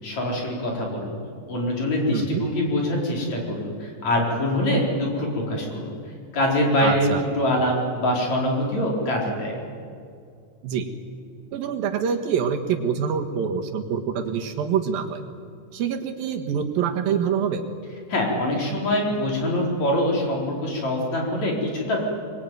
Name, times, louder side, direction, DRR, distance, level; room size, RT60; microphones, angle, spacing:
voice 1, 0.0-1.2 1.4-5.9 6.3-7.1 7.3-9.6 18.1-22.0, left 1 dB, 50° left, -1 dB, 5.8 m, -24 dB
voice 2, 2.1-2.5 6.8-7.2 10.6-10.9 11.5-15.2 15.7-17.7, right 7 dB, 90° right, 4 dB, 3.5 m, -25 dB
24.0 x 21.5 x 9.4 m, 2.3 s
omnidirectional pair, 4.0 m